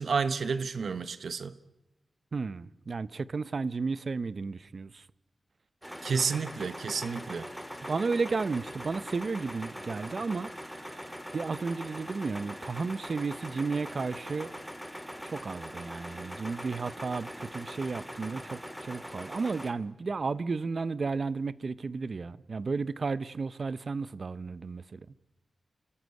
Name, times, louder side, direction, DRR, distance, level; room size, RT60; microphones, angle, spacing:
voice 1, 0.0-1.6 6.0-7.5, right 5 dB, 75° right, 1.1 m, -30 dB
voice 2, 2.3-5.0 7.8-14.5 15.2-25.1, right 4 dB, 50° right, 0.7 m, -33 dB
sound 1, 5.8-19.7, equal, 5° right, 2.5 m, -42 dB
29.0 x 14.5 x 9.3 m
wide cardioid pair, 90°, 0 cm